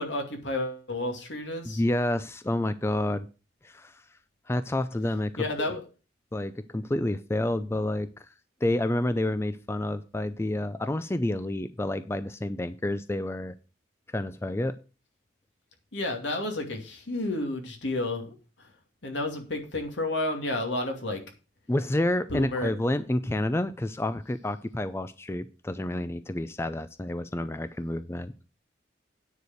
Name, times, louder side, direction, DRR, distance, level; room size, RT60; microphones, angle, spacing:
voice 1, 0.0-1.8 5.4-5.8 15.9-18.3 19.0-21.2 22.3-22.7, left 2 dB, 80° left, 4 dB, 2.5 m, -31 dB
voice 2, 1.7-3.3 3.6-4.0 4.5-5.5 6.3-8.1 8.6-13.5 14.1-14.8 21.7-28.3, left 1 dB, 15° left, 12 dB, 0.4 m, -29 dB
9.6 x 4.8 x 7.7 m, 0.33 s
head